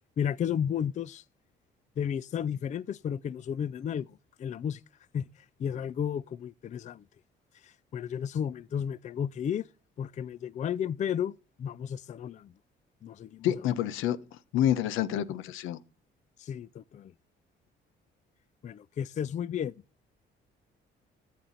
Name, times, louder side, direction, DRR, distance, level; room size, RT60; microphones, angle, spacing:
voice 1, 0.2-1.2 2.0-4.8 5.1-7.0 7.5-9.7 10.0-11.3 11.6-12.5 13.0-13.5 16.4-17.1 18.6-19.7, left 8 dB, 35° left, 0.4 m, -33 dB
voice 2, 13.4-14.2 14.5-15.8, left 11 dB, 85° left, 0.9 m, -28 dB
14.0 x 7.7 x 3.9 m
cardioid pair, 105°, 20 cm